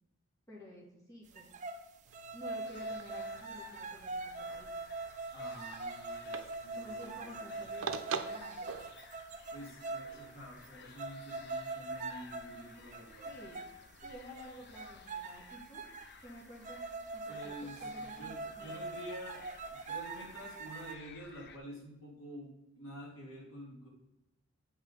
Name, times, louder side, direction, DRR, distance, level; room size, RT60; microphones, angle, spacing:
voice 1, 0.5-1.8 2.3-4.7 6.8-8.7 13.3-13.6 14.0-15.8 16.2-16.8 17.1-18.9, left 1 dB, 15° left, -6 dB, 2.2 m, -51 dB
sound 1, 1.4-1.8 2.1-10.2 10.6-10.7 11.0-12.6 12.9-13.7 14.0-14.4 14.8-16.1 16.6-20.9, right 3 dB, 35° right, 0.6 m, -42 dB
sound 2, 2.1-8.9, right 5 dB, 85° right, 0.6 m, -45 dB
sound 3, 2.6-21.6, left 5 dB, 55° left, 0.6 m, -57 dB
voice 2, 5.3-7.7 9.5-13.3 17.3-23.9, equal, 70° left, -3 dB, 2.8 m, -49 dB
8.3 x 5.8 x 4.0 m, 0.91 s
head